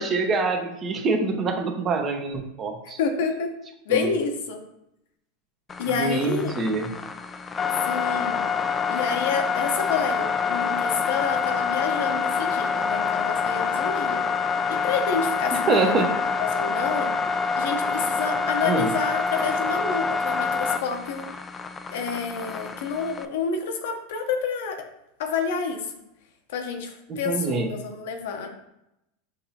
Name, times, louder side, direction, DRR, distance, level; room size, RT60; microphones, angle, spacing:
voice 1, 0.0-3.0 3.9-4.1 6.0-6.9 15.7-16.1 18.6-18.9 27.1-27.7, right 3 dB, 35° right, 4 dB, 0.8 m, -25 dB
voice 2, 3.0-3.5 3.9-4.6 5.8-6.6 7.9-8.5 8.9-14.3 14.7-16.0 16.4-17.2 17.6-21.2 21.9-24.9 25.2-25.8 26.5-28.5, left 5 dB, 70° left, 5 dB, 0.8 m, -29 dB
sound 1, 5.7-23.3, left 5 dB, 20° left, 0.3 m, -26 dB
6.4 x 2.8 x 2.8 m, 0.84 s
hypercardioid pair, 105°, 0 cm